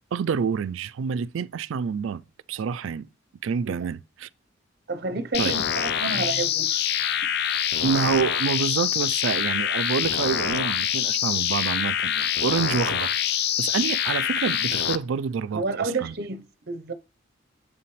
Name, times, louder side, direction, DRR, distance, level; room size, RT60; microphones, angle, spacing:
voice 1, 0.1-2.2 2.5-3.1 3.4-4.3 5.4-5.5 7.8-13.2 13.6-16.1, right 6 dB, 75° right, 0.3 m, -27 dB
voice 2, 4.9-6.8 15.5-16.9, right 3 dB, 50° right, 0.7 m, -30 dB
sound 1, 5.3-15.0, left 9 dB, 50° left, 0.4 m, -25 dB
7.7 x 5.8 x 3.1 m
head